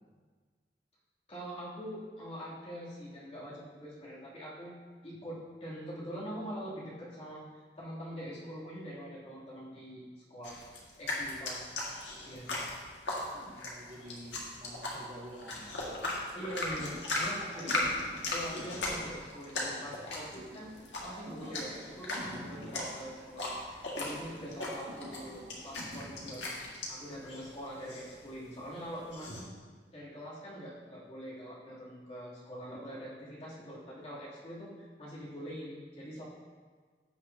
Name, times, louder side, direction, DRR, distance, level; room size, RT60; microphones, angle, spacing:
voice 1, 1.3-4.7 5.0-7.4 7.8-10.0 10.3-10.6 11.0-11.7 12.2-12.7 13.3-13.5 16.3-17.9 18.3-20.8 21.0-26.4 26.9-29.3 29.9-36.2, equal, 35° left, -8 dB, 3.0 m, -44 dB
sound 1, 10.4-29.4, left 2 dB, 90° left, 1.9 m, -38 dB
voice 2, 13.6-15.9 22.2-22.8, right 1 dB, 35° right, -3 dB, 1.2 m, -49 dB
sound 2, 16.5-27.2, right 1 dB, 60° right, 2.1 m, -50 dB
15.5 x 6.1 x 2.8 m, 1.5 s
head